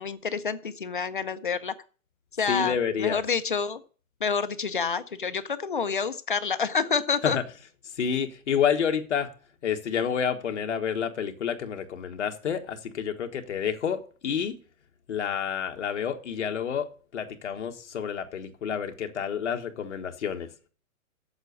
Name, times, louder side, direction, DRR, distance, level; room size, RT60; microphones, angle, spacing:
voice 1, 0.0-1.7 2.4-3.8 4.2-7.4, left 5 dB, 35° left, 0.5 m, -28 dB
voice 2, 2.5-3.2 7.2-7.4 8.0-9.3 9.6-14.5 15.1-20.5, left 7 dB, 55° left, 1.5 m, -29 dB
8.0 x 7.1 x 8.1 m
hypercardioid pair, 175°, 43 cm